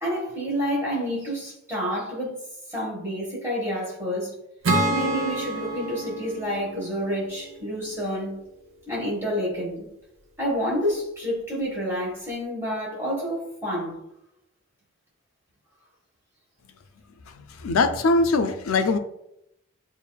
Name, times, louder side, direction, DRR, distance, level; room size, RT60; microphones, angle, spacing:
voice 1, 0.0-2.4 2.7-4.3 4.9-8.4 8.9-9.9 10.4-14.0, equal, 10° right, 1.4 m, -29 dB
Acoustic guitar / Strum, 4.6-8.1, right 2 dB, 85° right, 0.7 m, -28 dB
voice 2, 17.6-19.0, left 3 dB, 85° left, 0.4 m, -21 dB
6.7 x 2.5 x 2.3 m
head